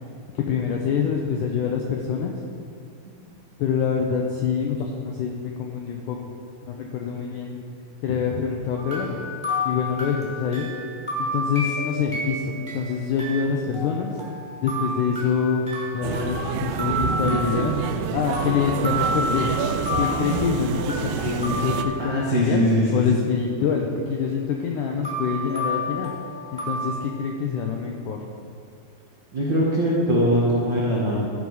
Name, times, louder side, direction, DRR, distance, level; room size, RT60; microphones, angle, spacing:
voice 1, 0.4-2.4 3.6-6.2 6.7-7.6 8.0-9.2 9.7-10.7 11.2-14.2 14.6-15.7 15.9-17.7 18.1-19.6 19.9-26.1 26.5-28.2, left 6 dB, 85° left, 1 dB, 1.8 m, -25 dB
sound 1, 8.8-22.6 25.0-26.9, equal, 5° right, 1.6 m, -31 dB
sound 2, 16.0-21.9, right 8 dB, 90° right, 2.5 m, -28 dB
voice 2, 22.0-23.2 29.3-31.3, equal, 70° right, -6 dB, 1.1 m, -21 dB
14.0 x 4.7 x 5.4 m, 2.3 s
omnidirectional pair, 4.4 m